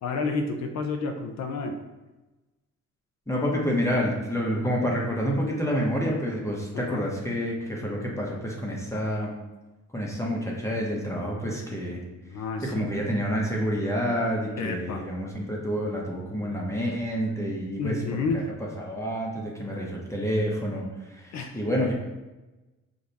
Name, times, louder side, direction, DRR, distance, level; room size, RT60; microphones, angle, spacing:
voice 1, 0.0-1.8 6.7-7.0 12.2-12.9 14.6-15.0 17.8-18.5 21.3-21.6, left 4 dB, 65° left, 4 dB, 0.6 m, -30 dB
voice 2, 3.3-9.3 9.9-12.0 12.6-21.9, equal, 10° left, -3 dB, 1.0 m, -28 dB
5.0 x 2.6 x 4.0 m, 1.1 s
cardioid pair, 90°, 30 cm